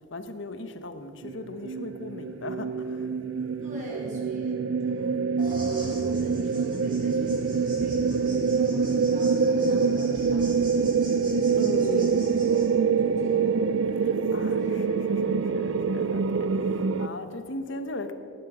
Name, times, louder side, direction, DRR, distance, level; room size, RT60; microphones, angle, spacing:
voice 1, 0.1-3.1 11.6-12.2 13.9-18.1, left 2 dB, 65° left, 8 dB, 1.1 m, -38 dB
sound 1, 1.2-17.1, right 5 dB, 70° right, 0.4 m, -25 dB
voice 2, 3.3-5.2 5.8-11.4 11.8-13.6 14.2-14.9, equal, 40° right, -4 dB, 4.2 m, -43 dB
sound 2, 5.4-12.7, right 1 dB, 25° right, 4.5 m, -43 dB
19.0 x 11.0 x 5.1 m, 2.5 s
head